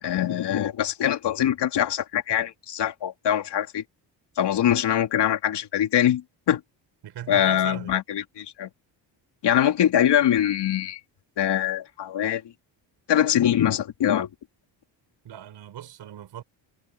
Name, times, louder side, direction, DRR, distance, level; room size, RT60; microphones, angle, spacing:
voice 1, 0.0-3.8 4.4-6.6 7.3-8.7 9.4-11.0 11.4-12.4 13.1-14.3, left 10 dB, 70° left, 2.9 m, -23 dB
voice 2, 7.0-8.0 15.2-16.4, right 11 dB, 70° right, 5.5 m, -39 dB
cardioid pair, 150°, 43 cm